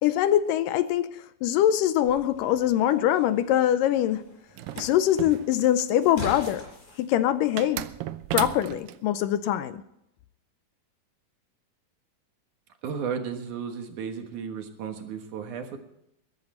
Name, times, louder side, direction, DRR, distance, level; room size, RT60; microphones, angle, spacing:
voice 1, 0.0-4.3 4.8-6.7 7.0-7.9 8.3-9.8, left 11 dB, 80° left, 2.1 m, -23 dB
sound 1, 2.0-7.0, left 3 dB, 55° left, 7.9 m, -43 dB
sound 2, 4.6-6.0 7.6-9.0, right 14 dB, 80° right, 2.3 m, -34 dB
voice 2, 12.8-15.8, right 6 dB, 65° right, 2.7 m, -34 dB
21.5 x 10.5 x 4.3 m
omnidirectional pair, 4.1 m